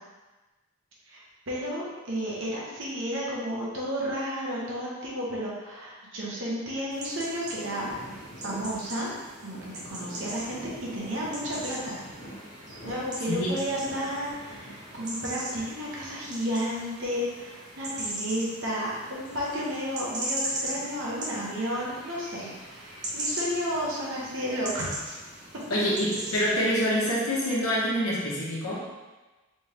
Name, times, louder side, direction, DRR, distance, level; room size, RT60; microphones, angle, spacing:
voice 1, 1.1-7.9 8.4-9.1 9.4-12.0 12.8-25.2, equal, 60° right, -5 dB, 0.9 m, -32 dB
sound 1, 6.9-26.7, right 1 dB, 35° right, 0.7 m, -39 dB
sound 2, 7.8-15.2, equal, 50° left, 1.1 m, -45 dB
voice 2, 25.7-28.8, equal, 80° left, -5 dB, 1.0 m, -26 dB
3.4 x 3.3 x 2.9 m, 1.2 s
head